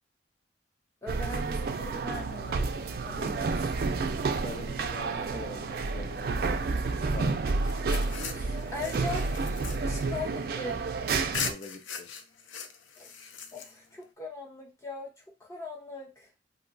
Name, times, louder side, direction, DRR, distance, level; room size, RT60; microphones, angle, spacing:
voice 1, 1.0-3.9 8.3-9.3 9.8-10.8 13.0-13.1 13.5-16.3, left 3 dB, 15° left, 0.8 m, -40 dB
sound 1, 1.1-11.5, right 4 dB, 50° right, 0.3 m, -30 dB
voice 2, 4.3-7.4 11.3-12.1, left 3 dB, 30° left, 0.4 m, -44 dB
sound 2, 7.5-10.9 11.3-14.0, left 6 dB, 90° left, 0.5 m, -40 dB
2.7 x 2.2 x 3.8 m
head